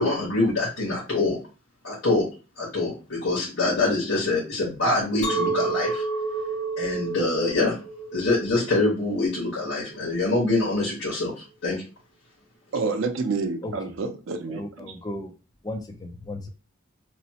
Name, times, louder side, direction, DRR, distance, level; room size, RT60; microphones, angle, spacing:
voice 1, 0.0-1.4 1.8-2.3 2.6-6.0 6.8-7.8 8.1-11.3 11.6-11.8, left 2 dB, 75° left, 1.4 m, -24 dB
Chink clink, 5.2-10.4, right 3 dB, 40° left, 0.8 m, -30 dB
voice 2, 12.7-14.9, right 4 dB, 75° right, 0.5 m, -28 dB
voice 3, 14.5-15.3 15.6-16.5, left 1 dB, 20° left, 0.4 m, -35 dB
3.0 x 2.0 x 2.8 m
head